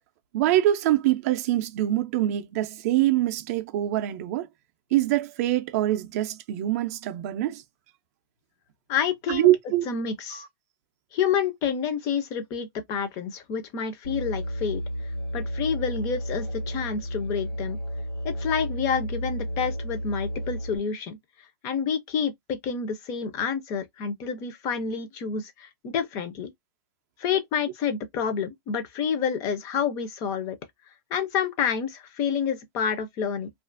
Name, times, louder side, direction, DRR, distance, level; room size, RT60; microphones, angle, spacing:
voice 1, 0.3-4.5 4.9-7.6 9.3-9.8 10.3-10.5, right 14 dB, 40° right, 0.4 m, -24 dB
voice 2, 8.9-9.5 9.9-10.4 11.1-14.8 15.3-17.8 18.2-21.2 21.6-26.5 27.2-30.6 31.1-33.5, left 7 dB, 25° left, 0.5 m, -28 dB
Musical instrument, 14.0-20.8, equal, 75° left, 1.2 m, -32 dB
2.4 x 2.4 x 2.4 m
supercardioid pair, 165°, 12 cm